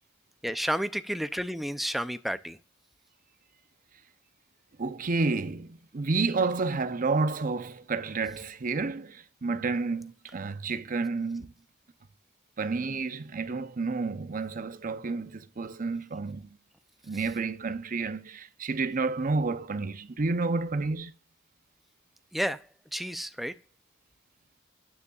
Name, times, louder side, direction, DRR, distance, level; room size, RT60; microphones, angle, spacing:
voice 1, 0.4-2.6 22.3-23.6, equal, ahead, 0.4 m, -31 dB
voice 2, 4.8-11.5 12.6-16.5 17.0-21.1, right 3 dB, 45° right, 0.6 m, -30 dB
9.6 x 9.6 x 2.4 m
head